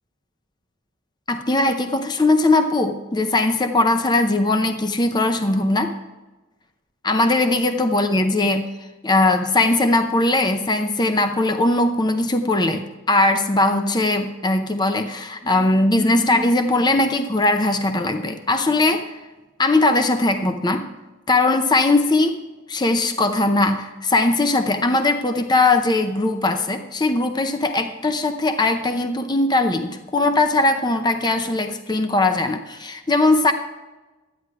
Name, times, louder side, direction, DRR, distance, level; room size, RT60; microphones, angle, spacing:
voice 1, 1.3-5.9 7.0-8.6 9.0-19.2 19.6-20.9 21.3-22.4 22.7-33.5, left 2 dB, 20° left, 7 dB, 0.6 m, -20 dB
13.0 x 9.7 x 4.7 m, 1.2 s
head